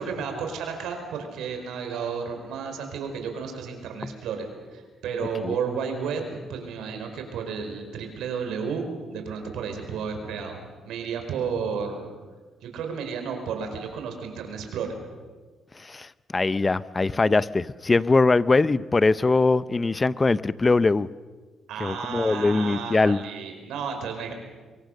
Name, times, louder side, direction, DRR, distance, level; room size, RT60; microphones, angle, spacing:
voice 1, 0.0-6.2 6.5-10.6 10.8-12.1 12.6-15.0 21.7-24.3, right 6 dB, 85° right, 5 dB, 4.8 m, -32 dB
voice 2, 15.9-21.1 21.8-23.2, left 3 dB, 25° left, 17 dB, 0.7 m, -22 dB
24.5 x 23.0 x 6.6 m, 1.4 s
cardioid pair, 90°, 0 cm